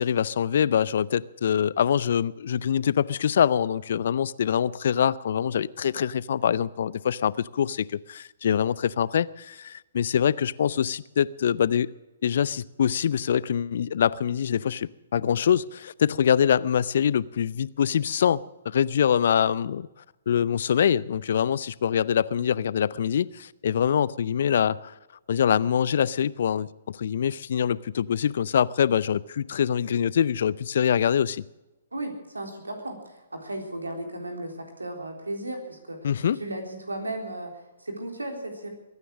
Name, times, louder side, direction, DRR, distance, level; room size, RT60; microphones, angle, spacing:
voice 1, 0.0-11.9 12.2-19.9 20.3-24.9 25.3-26.7 26.9-31.4 36.0-36.4, left 8 dB, 60° left, 0.5 m, -24 dB
voice 2, 31.9-36.1 36.4-38.7, right 1 dB, 85° right, 3.8 m, -35 dB
22.5 x 9.8 x 6.4 m
figure-of-eight pair, 125°, 0 cm